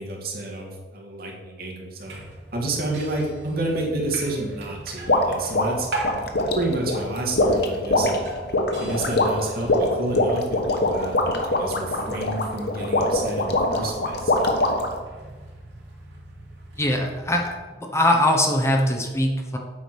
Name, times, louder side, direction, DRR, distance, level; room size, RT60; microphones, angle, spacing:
voice 1, 0.0-2.2 2.5-5.9 6.6-8.2 8.8-11.2 11.5-14.5, right 2 dB, 60° right, -1 dB, 2.0 m, -30 dB
sound 1, 2.0-17.5, right 2 dB, 80° right, 2.0 m, -40 dB
pumps.slow.echo, 5.1-15.0, left 2 dB, 65° left, 1.1 m, -23 dB
voice 2, 16.8-17.5 17.9-19.6, left 1 dB, 15° left, 1 dB, 1.0 m, -21 dB
8.4 x 4.9 x 6.0 m, 1.3 s
head